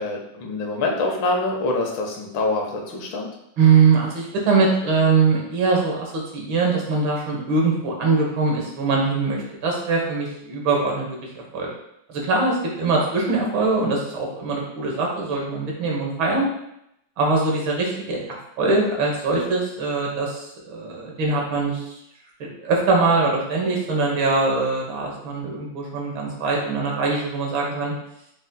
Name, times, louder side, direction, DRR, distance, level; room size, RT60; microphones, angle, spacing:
voice 1, 0.0-3.3, left 2 dB, 75° left, 1 dB, 1.6 m, -25 dB
voice 2, 3.6-11.2 11.5-11.7 12.1-16.5 17.2-18.2 18.6-21.9 22.4-27.9, right 4 dB, 85° right, -1 dB, 1.9 m, -22 dB
6.0 x 4.0 x 2.2 m, 0.79 s
omnidirectional pair, 2.1 m